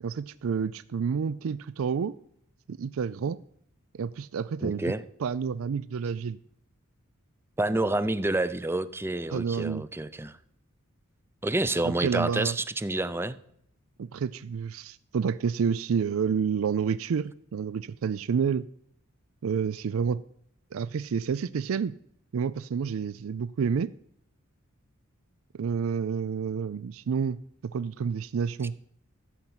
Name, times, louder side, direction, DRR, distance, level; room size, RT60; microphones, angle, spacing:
voice 1, 0.0-2.2 2.7-3.4 3.9-4.9 5.2-6.4 9.3-9.8 11.8-12.6 14.0-18.7 19.4-20.2 20.7-21.9 22.3-23.9 25.5-28.8, right 6 dB, 70° right, 16 dB, 0.4 m, -29 dB
voice 2, 4.6-5.0 7.6-10.4 11.4-13.4, right 2 dB, 10° right, 14 dB, 0.5 m, -28 dB
14.5 x 5.7 x 7.9 m, 0.70 s
head